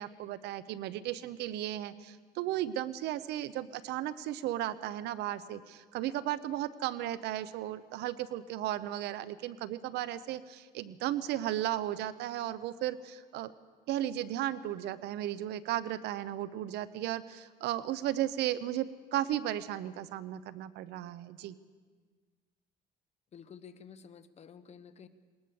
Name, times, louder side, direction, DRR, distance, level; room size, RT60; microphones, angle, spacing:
voice 1, 0.0-13.5 13.9-21.5, right 12 dB, 85° right, 16 dB, 0.8 m, -35 dB
voice 2, 23.3-25.1, left 7 dB, 40° left, 10 dB, 1.2 m, -51 dB
20.5 x 19.0 x 7.0 m, 1.5 s
cardioid pair, 110°, 17 cm